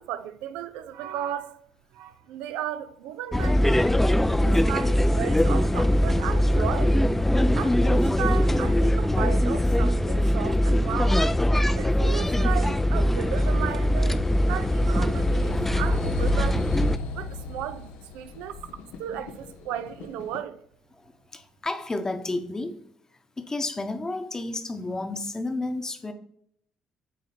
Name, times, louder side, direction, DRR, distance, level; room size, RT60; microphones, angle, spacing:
voice 1, 0.0-1.6 1.9-3.6 4.4-7.0 7.6-11.2 11.8-16.7 17.1-20.6, right 10 dB, 80° right, 0.4 m, -35 dB
sound 1, 3.3-17.0, equal, 10° left, 0.4 m, -22 dB
voice 2, 4.0-4.6 15.4-15.5 21.0-22.8 23.4-26.1, left 2 dB, 25° left, 0.9 m, -32 dB
sound 2, 10.0-20.4, left 3 dB, 80° left, 0.6 m, -38 dB
8.5 x 3.1 x 4.2 m
hypercardioid pair, 55°, 2 cm